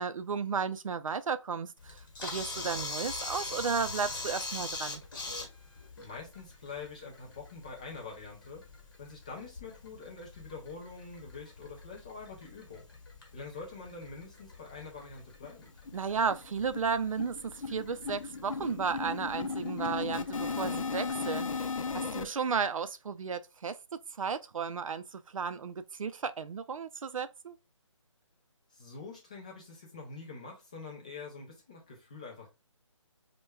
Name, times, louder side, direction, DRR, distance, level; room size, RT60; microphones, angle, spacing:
voice 1, 0.0-5.0 15.9-27.6, right 6 dB, 90° right, 0.4 m, -34 dB
Camera, 1.8-21.1, left 3 dB, 40° left, 1.0 m, -44 dB
voice 2, 6.0-8.7 9.0-12.8 13.3-15.7 22.0-22.3 28.7-32.5, left 4 dB, 15° left, 0.4 m, -45 dB
sound 1, 15.0-15.1 15.4-15.5 15.9-16.0 16.3-22.3, left 4 dB, 85° left, 0.5 m, -36 dB
4.4 x 2.2 x 2.2 m
hypercardioid pair, 165°, 17 cm